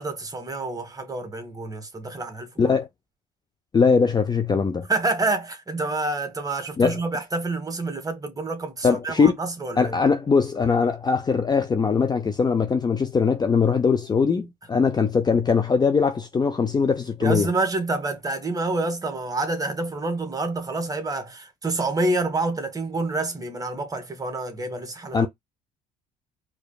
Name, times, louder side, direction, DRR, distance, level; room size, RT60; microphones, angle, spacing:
voice 1, 0.0-2.8 4.9-10.0 17.2-25.3, right 2 dB, 20° right, 1.3 m, -28 dB
voice 2, 3.7-4.9 6.8-7.0 8.8-9.4 9.8-17.5 25.1-25.3, left 5 dB, 20° left, 0.5 m, -21 dB
4.8 x 2.9 x 2.3 m
supercardioid pair, 85°, 19 cm